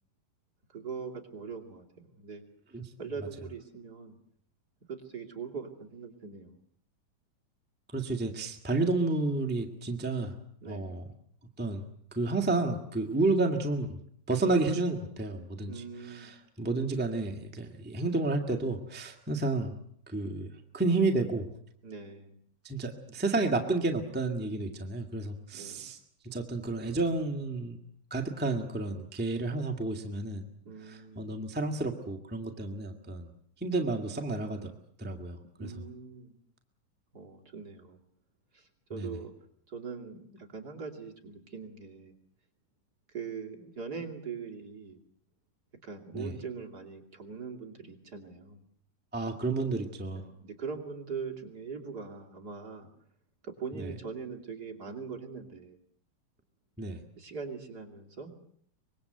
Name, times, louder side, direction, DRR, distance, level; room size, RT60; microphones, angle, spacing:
voice 1, 0.7-2.4 3.0-4.2 4.9-6.5 10.6-11.1 15.7-16.3 21.8-22.4 25.5-25.9 30.6-31.2 35.6-36.3 37.1-38.0 38.5-39.3 39.7-42.1 43.1-45.0 45.8-48.6 50.1-52.9 53.4-55.8 57.2-58.3, right 5 dB, 30° right, 2 dB, 2.8 m, -41 dB
voice 2, 7.9-10.3 10.6-11.0 11.6-11.8 12.1-14.0 14.3-19.7 20.1-20.5 20.7-21.5 22.6-26.0 26.2-27.8 28.1-30.5 30.8-33.3 33.6-34.7 35.0-35.4 38.9-39.2 46.1-46.3 49.1-50.2 53.7-53.9 56.8-57.0, right 2 dB, 5° right, 3 dB, 0.9 m, -31 dB
25.0 x 22.0 x 7.9 m, 0.65 s
omnidirectional pair, 4.0 m